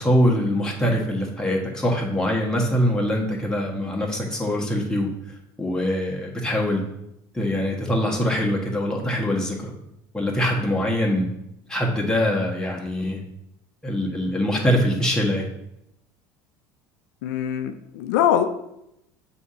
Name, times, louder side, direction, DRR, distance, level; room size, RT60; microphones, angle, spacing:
voice 1, 0.0-5.1 5.6-6.8 7.3-9.7 10.1-11.2 11.7-13.2 13.8-15.5, equal, 5° left, -2 dB, 1.5 m, -23 dB
voice 2, 17.2-18.5, left 10 dB, 85° left, 8 dB, 0.4 m, -22 dB
7.0 x 2.8 x 4.9 m, 0.82 s
supercardioid pair, 100°, 10 cm